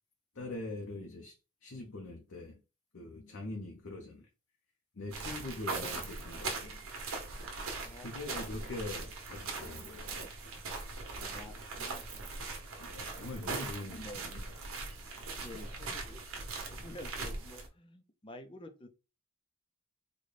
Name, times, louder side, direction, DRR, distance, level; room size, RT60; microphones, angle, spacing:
voice 1, 0.3-1.4 1.6-2.6 2.9-4.3 4.9-6.9 8.0-10.6 12.8-14.5 15.1-15.3, left 2 dB, 70° left, 0.7 m, -43 dB
sound 1, 5.1-17.7, right 3 dB, 90° right, 0.9 m, -40 dB
voice 2, 7.8-8.6 11.1-12.3 12.8-13.5 13.8-14.5 15.3-16.2 16.7-18.9, left 1 dB, 25° left, 0.5 m, -50 dB
3.9 x 2.2 x 3.3 m
head